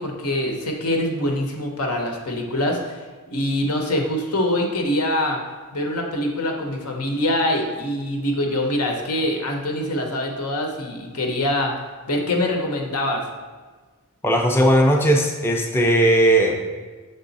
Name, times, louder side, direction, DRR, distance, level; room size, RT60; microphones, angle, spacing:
voice 1, 0.0-3.0 3.3-5.4 5.7-11.7 12.1-13.2, left 1 dB, 80° left, 2 dB, 0.9 m, -24 dB
voice 2, 14.2-16.7, right 1 dB, 10° left, 1 dB, 0.4 m, -17 dB
6.8 x 3.6 x 4.1 m, 1.4 s
head